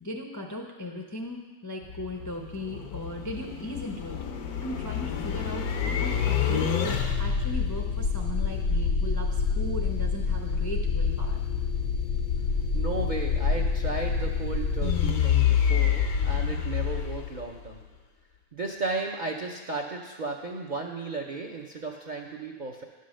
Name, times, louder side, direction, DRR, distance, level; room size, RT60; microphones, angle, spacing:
voice 1, 0.0-4.2 4.6-11.4, left 1 dB, 20° left, 1 dB, 0.4 m, -37 dB
sound 1, 1.8-17.8, left 6 dB, 85° left, 1.3 m, -27 dB
voice 2, 12.7-17.8 18.5-22.8, right 3 dB, 45° right, 1 dB, 0.6 m, -34 dB
10.5 x 5.5 x 6.3 m, 1.3 s
omnidirectional pair, 1.5 m